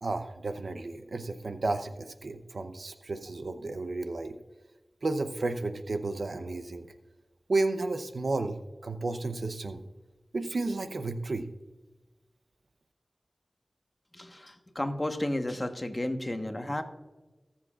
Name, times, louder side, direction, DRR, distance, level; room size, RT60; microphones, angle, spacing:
voice 1, 0.0-4.3 5.0-6.9 7.5-9.8 10.3-11.5, right 2 dB, 80° right, 9 dB, 0.7 m, -32 dB
voice 2, 14.1-16.8, left 1 dB, 30° left, 6 dB, 1.2 m, -32 dB
18.0 x 7.4 x 2.4 m, 1.1 s
wide cardioid pair, 45°, 0 cm